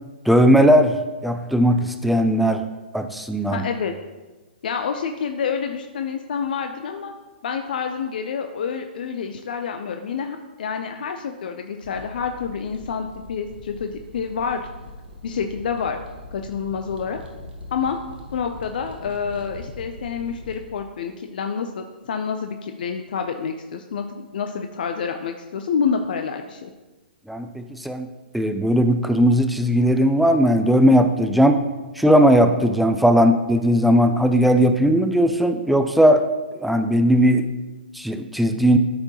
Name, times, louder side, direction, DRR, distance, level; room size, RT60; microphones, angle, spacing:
voice 1, 0.3-1.0 1.2-2.7 2.9-3.6 27.3-28.1 28.3-31.6 32.0-36.3 36.5-37.5 37.9-38.8, equal, ahead, 7 dB, 0.4 m, -17 dB
voice 2, 3.5-3.9 4.6-7.1 7.4-14.6 15.2-16.0 16.3-17.2 17.7-18.0 18.3-26.7, left 6 dB, 55° left, 6 dB, 0.5 m, -28 dB
sound 1, 11.8-20.7, left 2 dB, 70° right, 1.5 m, -41 dB
13.0 x 4.4 x 2.9 m, 1.2 s
figure-of-eight pair, 120°, 6 cm